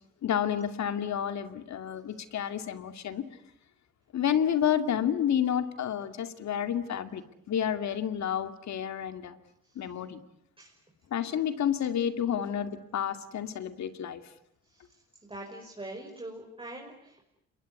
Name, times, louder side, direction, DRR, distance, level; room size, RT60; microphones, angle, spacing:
voice 1, 0.2-3.2 4.1-9.4 9.8-10.2 11.1-14.2, left 9 dB, 65° left, 10 dB, 2.4 m, -30 dB
voice 2, 15.3-17.2, right 1 dB, 15° right, 0 dB, 5.5 m, -43 dB
27.5 x 22.0 x 9.7 m, 0.75 s
cardioid pair, 90°, 30 cm